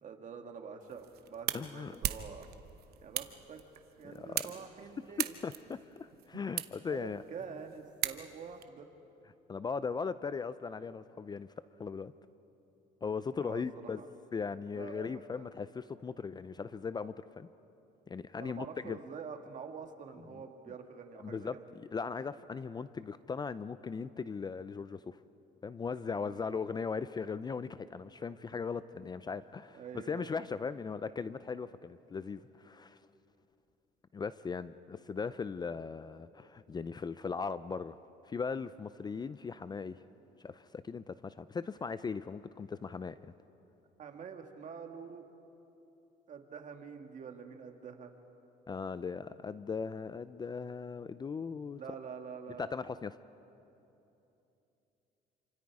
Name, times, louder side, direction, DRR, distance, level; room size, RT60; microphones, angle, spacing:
voice 1, 0.0-2.5 3.0-3.6 4.0-5.5 6.8-8.9 13.3-13.6 14.0-14.1 14.7-15.5 18.4-21.7 26.2-26.4 29.7-30.3 44.0-45.3 46.3-48.1 51.8-52.7, right 6 dB, 50° right, 4 dB, 2.1 m, -46 dB
sound 1, 0.8-8.6, right 12 dB, 70° right, 0.9 m, -40 dB
voice 2, 1.5-2.0 4.0-4.5 5.2-7.2 9.5-11.5 11.8-12.1 13.0-14.0 14.3-17.5 18.1-19.0 21.2-25.2 25.6-33.0 34.1-38.0 38.2-40.0 40.4-43.3 48.7-51.8 52.6-53.2, left 5 dB, 25° left, 14 dB, 0.5 m, -38 dB
28.0 x 26.0 x 4.9 m, 3.0 s
cardioid pair, 110°, 17 cm